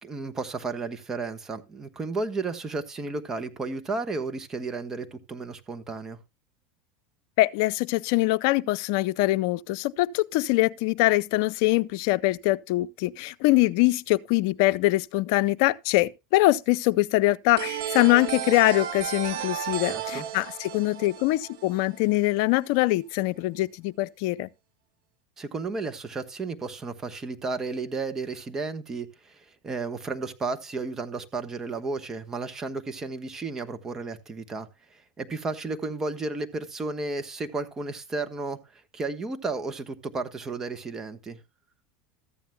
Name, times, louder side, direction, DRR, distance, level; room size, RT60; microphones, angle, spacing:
voice 1, 0.0-6.2 19.8-20.3 25.4-41.4, right 3 dB, 25° right, 1.2 m, -33 dB
voice 2, 7.4-24.5, left 18 dB, 65° left, 0.5 m, -23 dB
sound 1, 17.6-22.2, right 10 dB, 75° right, 1.5 m, -33 dB
14.0 x 9.2 x 2.2 m
hypercardioid pair, 105°, 2 cm